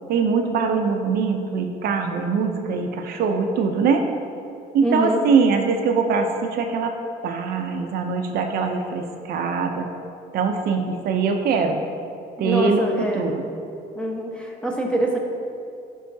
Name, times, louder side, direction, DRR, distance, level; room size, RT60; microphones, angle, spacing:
voice 1, 0.1-4.1 4.7-7.0 7.2-9.9 10.3-11.8 12.4-12.8 13.1-13.4, right 5 dB, 65° right, 4 dB, 0.6 m, -22 dB
voice 2, 4.8-5.2 12.4-13.3 13.9-15.2, right 1 dB, 5° left, -1 dB, 1.0 m, -24 dB
11.0 x 5.5 x 2.7 m, 2.6 s
cardioid pair, 110°, 17 cm